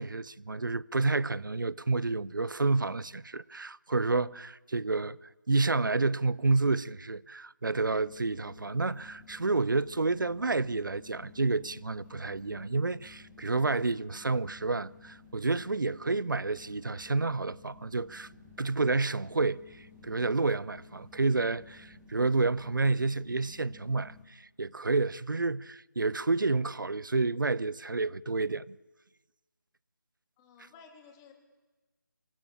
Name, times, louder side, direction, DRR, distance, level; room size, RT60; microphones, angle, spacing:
voice 1, 0.0-5.2 5.5-18.3 18.6-28.8, right 3 dB, 75° right, 0.8 m, -29 dB
sound 1, 7.7-24.2, left 4 dB, 10° right, 3.9 m, -54 dB
voice 2, 30.4-31.3, left 5 dB, 15° left, 3.2 m, -55 dB
30.0 x 25.0 x 7.1 m
figure-of-eight pair, 165°, 11 cm